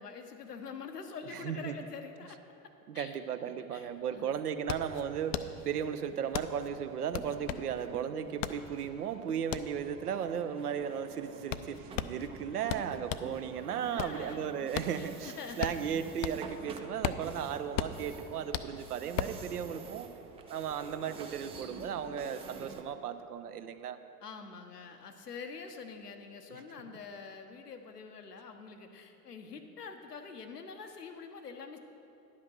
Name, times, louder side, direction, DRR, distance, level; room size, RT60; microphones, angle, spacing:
voice 1, 0.0-2.4 2.9-3.2 3.6-4.4 13.4-15.9 24.2-31.8, left 5 dB, 80° left, 6 dB, 0.9 m, -46 dB
voice 2, 1.3-1.7 2.9-20.1 20.5-24.0 26.5-26.6, right 8 dB, 75° right, 10 dB, 0.6 m, -36 dB
sound 1, 3.7-3.8 4.1-13.4 13.8-16.6 16.9-19.5, left 10 dB, 55° left, 0.5 m, -38 dB
sound 2, 5.0-22.8, right 4 dB, 15° right, 0.4 m, -49 dB
11.0 x 5.8 x 6.1 m, 2.7 s
figure-of-eight pair, 75°, 47 cm